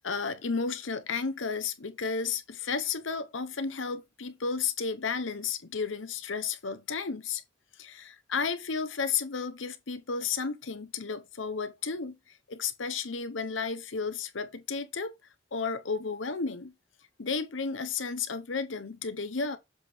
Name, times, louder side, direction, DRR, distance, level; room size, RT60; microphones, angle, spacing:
voice 1, 0.0-7.4 7.8-15.1 15.5-16.7 17.2-19.6, left 5 dB, 75° left, 0.9 m, -33 dB
7.2 x 3.5 x 4.4 m
head